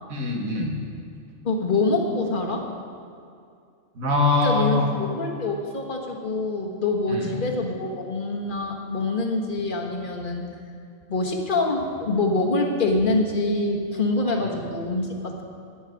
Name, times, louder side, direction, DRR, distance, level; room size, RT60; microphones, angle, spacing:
voice 1, 0.1-0.8 4.0-4.9 7.1-7.4 14.5-14.6, left 2 dB, 90° right, -1 dB, 2.0 m, -23 dB
voice 2, 1.4-2.7 4.4-10.5 11.1-15.4, left 2 dB, 40° left, 0 dB, 1.3 m, -25 dB
11.0 x 9.5 x 5.1 m, 2.4 s
omnidirectional pair, 1.4 m